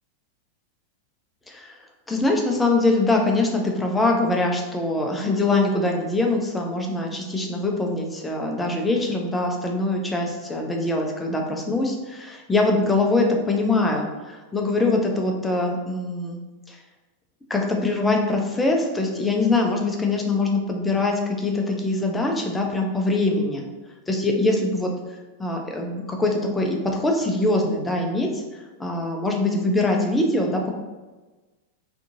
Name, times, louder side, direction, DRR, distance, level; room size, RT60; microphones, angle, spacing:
voice 1, 1.5-1.8 2.1-16.4 16.7-16.8 17.5-23.7 24.1-24.9 25.4-28.4 28.8-30.8, left 2 dB, 10° left, 1 dB, 0.4 m, -23 dB
2.6 x 2.4 x 2.6 m, 1.2 s
figure-of-eight pair, 90°, 0 cm